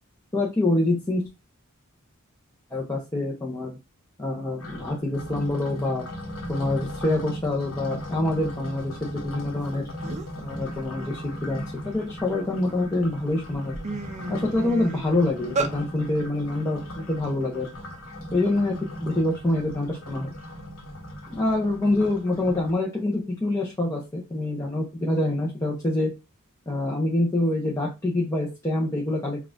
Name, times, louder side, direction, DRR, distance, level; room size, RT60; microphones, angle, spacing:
voice 1, 0.3-1.3 2.7-3.8 4.2-6.0 6.5-9.8 10.4-13.8 14.3-17.7 18.3-18.7 19.0-20.3 21.3-26.1 26.7-29.4, left 2 dB, 15° left, -2 dB, 0.7 m, -26 dB
sound 1, 4.6-22.7, equal, 65° left, 0.9 m, -38 dB
sound 2, 9.7-9.8 10.0-10.4 10.9-12.5 13.0-13.2 13.5-15.7, right 3 dB, 35° right, 0.5 m, -32 dB
5.2 x 2.4 x 2.5 m, 0.26 s
head